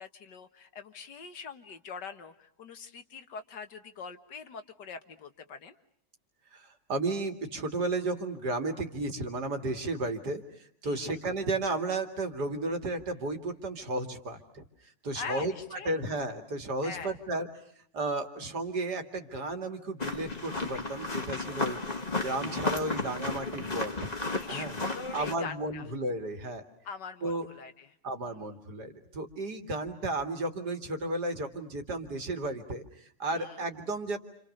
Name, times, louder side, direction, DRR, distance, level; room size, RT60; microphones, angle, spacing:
voice 1, 0.0-5.7 10.8-11.2 15.1-16.0 16.8-17.2 24.3-25.9 26.8-28.0 28.2-28.3 33.3-33.6, left 6 dB, 70° left, 9 dB, 2.1 m, -43 dB
voice 2, 6.5-14.6 15.0-17.5 17.9-21.8 22.1-23.9 24.5-24.7 25.1-26.6 27.2-27.5 28.0-34.2, right 2 dB, 65° right, 6 dB, 2.8 m, -33 dB
sound 1, 20.0-25.4, left 3 dB, 20° left, 2.0 m, -33 dB
29.5 x 28.0 x 6.6 m, 0.64 s
omnidirectional pair, 1.9 m